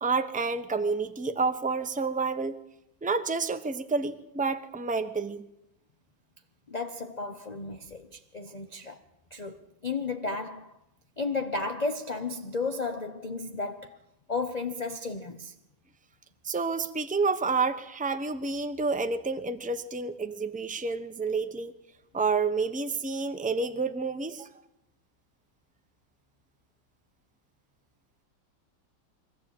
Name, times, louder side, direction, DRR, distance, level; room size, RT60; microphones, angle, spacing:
voice 1, 0.0-2.6 3.0-5.4 16.4-21.7 22.1-24.5, right 4 dB, 10° right, 0.4 m, -29 dB
voice 2, 6.7-9.0 9.3-10.7 11.2-14.0 14.3-15.5, left 3 dB, 40° left, 0.6 m, -33 dB
22.5 x 14.5 x 8.9 m
omnidirectional pair, 2.0 m